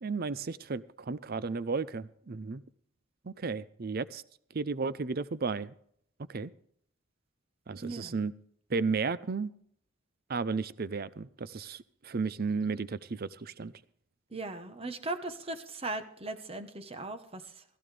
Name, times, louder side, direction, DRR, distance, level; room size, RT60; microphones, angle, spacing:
voice 1, 0.0-2.6 3.3-4.2 4.5-5.7 6.3-6.5 7.7-8.3 8.7-9.5 10.3-13.7, right 4 dB, 45° right, 0.5 m, -33 dB
voice 2, 7.8-8.1 14.3-17.6, right 2 dB, 25° right, 1.0 m, -38 dB
16.0 x 14.0 x 3.4 m
head